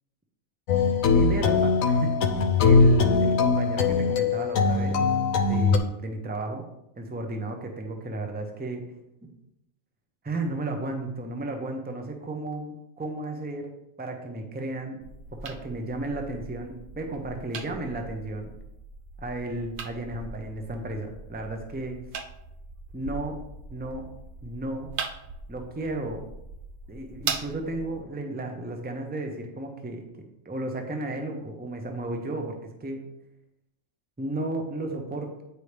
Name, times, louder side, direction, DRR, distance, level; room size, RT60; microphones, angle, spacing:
sound 1, 0.7-5.8, left 4 dB, 80° left, 1.0 m, -21 dB
voice 1, 1.1-2.1 2.6-5.0 5.4-6.7 7.0-8.8 9.2-9.3 10.2-13.7 14.0-15.0 15.4-18.5 19.2-22.0 22.9-23.4 23.7-24.1 24.4-24.9 25.5-26.3 26.9-30.1 30.4-33.0 34.2-35.4, right 2 dB, 10° right, 4 dB, 0.6 m, -33 dB
sound 2, 15.0-28.0, right 5 dB, 65° right, 0.5 m, -40 dB
8.4 x 4.8 x 3.3 m, 0.85 s
omnidirectional pair, 1.4 m